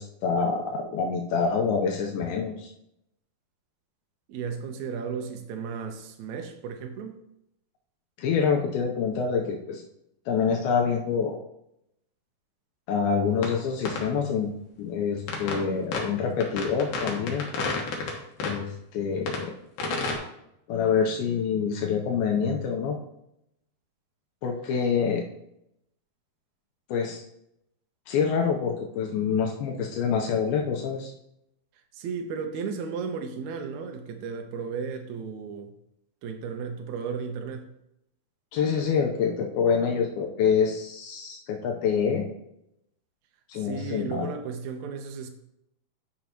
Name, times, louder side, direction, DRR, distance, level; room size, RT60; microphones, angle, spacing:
voice 1, 0.0-2.7 8.2-9.8 10.3-11.4 12.9-14.5 14.8-17.5 18.4-19.5 20.7-23.0 24.4-25.3 26.9-27.2 28.1-31.1 38.5-42.3 43.5-44.3, left 6 dB, 85° left, 1 dB, 2.6 m, -26 dB
voice 2, 4.3-7.2 31.9-35.7 36.2-37.7 43.6-45.3, right 6 dB, 75° right, 4 dB, 1.7 m, -34 dB
sound 1, 13.4-13.5 13.9-14.0 15.3-15.6 15.9-16.0 16.4-18.1 18.4-18.6 19.3-19.4 19.8-20.2, left 3 dB, 70° left, 2.9 m, -30 dB
10.5 x 6.2 x 2.9 m, 0.79 s
omnidirectional pair, 4.4 m